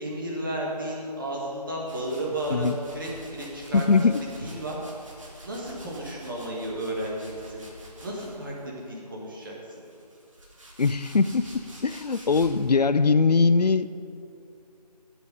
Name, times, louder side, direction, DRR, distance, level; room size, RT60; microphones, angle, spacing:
voice 1, 0.0-2.7 2.9-4.8 5.4-7.7 8.0-9.6, right 1 dB, 30° right, -3 dB, 1.6 m, -33 dB
sound 1, 1.9-8.7 9.4-12.7, right 1 dB, 50° right, 1.9 m, -47 dB
voice 2, 3.7-4.2 10.8-13.9, left 4 dB, 75° left, 15 dB, 0.5 m, -21 dB
9.1 x 8.1 x 5.4 m, 2.7 s
figure-of-eight pair, 160°, 21 cm